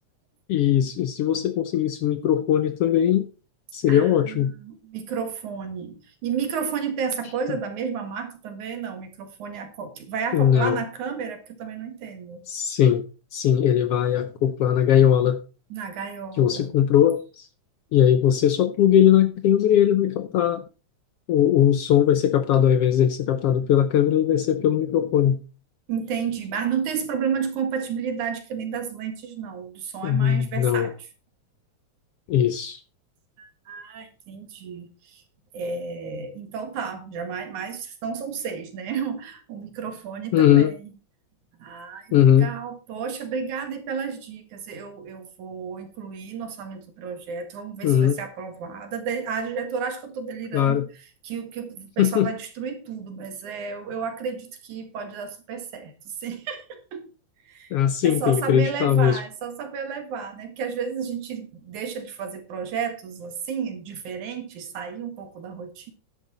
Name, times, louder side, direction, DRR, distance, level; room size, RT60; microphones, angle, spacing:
voice 1, 0.5-3.3 3.7-4.5 10.3-10.8 12.5-13.0 13.3-15.4 16.4-17.5 17.9-20.6 21.3-25.4 30.0-30.9 32.3-32.8 40.3-40.7 42.1-42.5 47.8-48.2 50.5-50.9 52.0-52.3 57.7-59.2, left 10 dB, 75° left, 1.4 m, -20 dB
voice 2, 3.9-12.4 15.7-16.7 25.9-31.1 33.4-35.2 35.5-40.9 41.6-57.1 57.5-57.8 58.0-65.9, right 6 dB, 85° right, 3.2 m, -32 dB
11.0 x 9.4 x 4.2 m
omnidirectional pair, 3.3 m